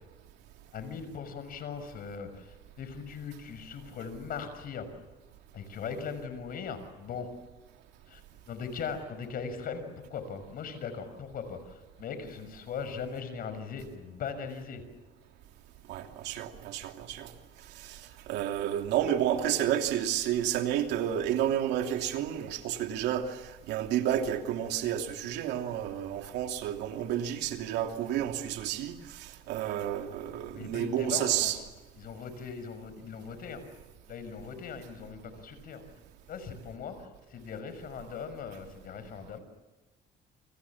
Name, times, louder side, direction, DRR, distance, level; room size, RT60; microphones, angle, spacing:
voice 1, 0.7-4.9 5.5-7.3 8.1-8.2 8.5-14.8 30.5-31.5 32.0-33.7 34.1-35.9 36.3-39.4, left 6 dB, 60° left, 6.0 m, -39 dB
voice 2, 15.9-17.3 17.8-31.6, right 10 dB, 85° right, 2.9 m, -31 dB
29.5 x 25.5 x 7.3 m
cardioid pair, 110°, 17 cm